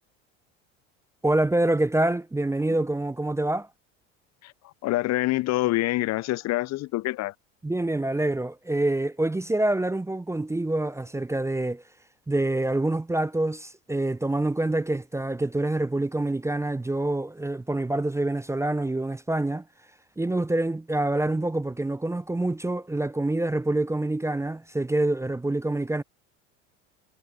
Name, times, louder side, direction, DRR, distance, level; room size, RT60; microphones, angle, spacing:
voice 1, 1.2-3.7 7.6-11.8 12.3-19.6 20.2-26.0, right 2 dB, 5° right, 0.6 m, -26 dB
voice 2, 4.4-7.3, left 17 dB, 45° left, 0.6 m, -26 dB
hypercardioid pair, 80°, 39 cm